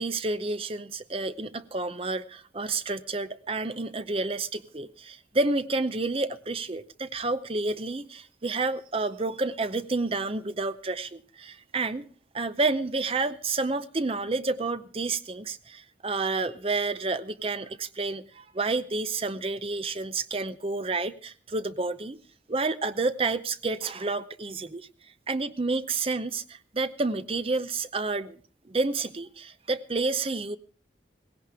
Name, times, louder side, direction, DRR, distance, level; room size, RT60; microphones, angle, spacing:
voice 1, 0.0-12.1 12.3-22.2 22.5-24.9 25.3-30.6, right 3 dB, 30° right, 0.6 m, -30 dB
17.5 x 16.5 x 3.5 m
head